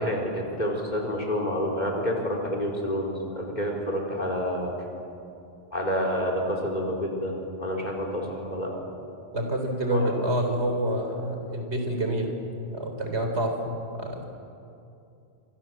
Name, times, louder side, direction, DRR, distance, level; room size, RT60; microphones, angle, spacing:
voice 1, 0.0-4.8 5.7-7.3 7.6-8.7 9.9-10.1, equal, 40° left, 1 dB, 4.6 m, -28 dB
voice 2, 9.3-12.3 12.7-14.2, right 1 dB, 80° right, 3 dB, 4.2 m, -28 dB
26.5 x 24.5 x 7.7 m, 2.6 s
omnidirectional pair, 1.1 m